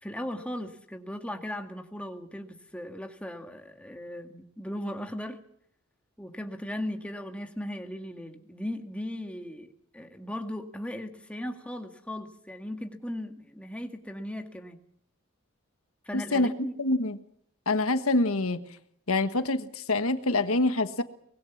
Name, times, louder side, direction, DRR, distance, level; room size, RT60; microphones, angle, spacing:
voice 1, 0.0-5.4 6.2-14.8 16.1-16.7, left 1 dB, 5° left, 4 dB, 1.9 m, -37 dB
voice 2, 16.1-16.5 16.8-17.2 17.7-18.6 19.1-21.0, left 2 dB, 85° left, 10 dB, 1.5 m, -26 dB
24.5 x 21.0 x 7.3 m, 0.67 s
head